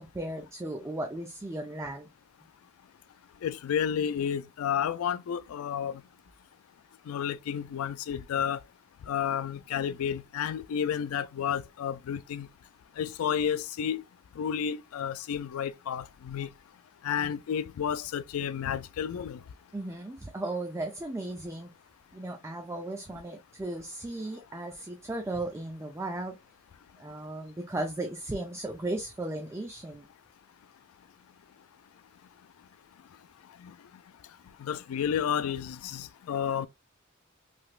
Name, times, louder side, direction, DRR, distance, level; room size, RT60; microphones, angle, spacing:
voice 1, 0.0-2.1 19.7-21.7 22.1-26.4 27.0-30.1, right 2 dB, 15° right, 0.4 m, -36 dB
voice 2, 3.4-6.0 7.1-8.6 9.1-12.5 13.0-14.0 14.4-16.5 17.0-19.4 33.6-33.7 34.6-36.7, left 8 dB, 90° left, 0.3 m, -31 dB
3.3 x 2.9 x 2.3 m
head